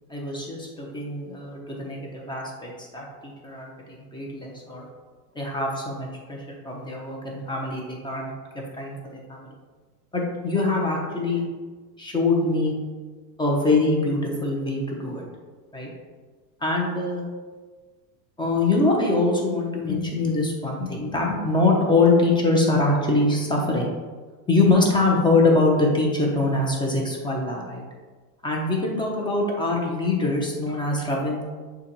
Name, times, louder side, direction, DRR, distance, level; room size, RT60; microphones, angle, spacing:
voice 1, 0.0-4.9 5.3-9.5 10.1-11.4 12.0-12.7 13.4-15.2 15.7-15.9 16.6-17.2 18.4-23.9 24.5-27.8 28.4-31.4, left 2 dB, 10° left, -1 dB, 0.9 m, -23 dB
6.5 x 2.5 x 3.1 m, 1.4 s
supercardioid pair, 110°, 48 cm